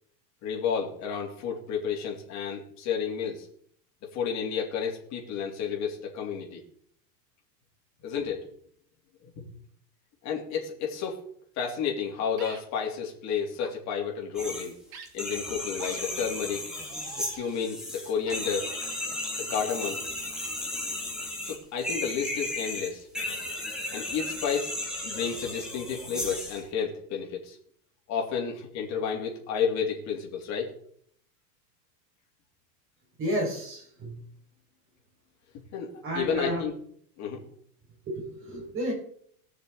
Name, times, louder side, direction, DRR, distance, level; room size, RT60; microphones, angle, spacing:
voice 1, 0.4-3.5 4.1-6.6 8.0-8.4 9.2-9.4 10.2-11.2 11.6-14.8 15.1-16.7 17.3-18.7 19.5-20.0 21.4-23.1 23.9-24.7 25.0-27.6 28.1-30.7 35.7-36.7 37.2-37.4, left 7 dB, 35° left, -1 dB, 3.1 m, -31 dB
sound 1, 12.4-12.6 13.5-13.7 14.9-15.1 15.8-16.0 16.7-17.6 18.3-18.4, right 6 dB, 85° right, 2.4 m, -44 dB
more pain, 14.3-14.7 15.1-26.6, left 1 dB, ahead, 2.3 m, -35 dB
voice 2, 33.2-34.2 36.0-36.6 38.0-38.9, right 1 dB, 25° right, -2 dB, 5.3 m, -31 dB
19.5 x 6.7 x 3.9 m, 0.63 s
supercardioid pair, 155°, 49 cm